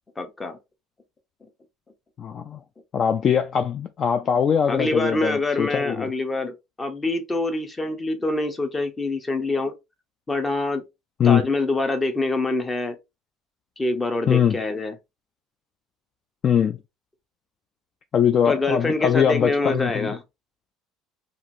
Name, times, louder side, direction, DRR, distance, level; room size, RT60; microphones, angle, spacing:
voice 1, 0.2-0.6 4.7-9.7 10.3-10.8 11.2-13.0 13.8-14.9 18.5-20.2, left 2 dB, 20° left, 0.7 m, -25 dB
voice 2, 2.2-2.6 2.9-6.1 11.2-11.5 14.3-14.6 16.4-16.8 18.1-20.1, left 8 dB, 40° left, 0.3 m, -21 dB
2.9 x 2.5 x 2.6 m
supercardioid pair, 105°, 0 cm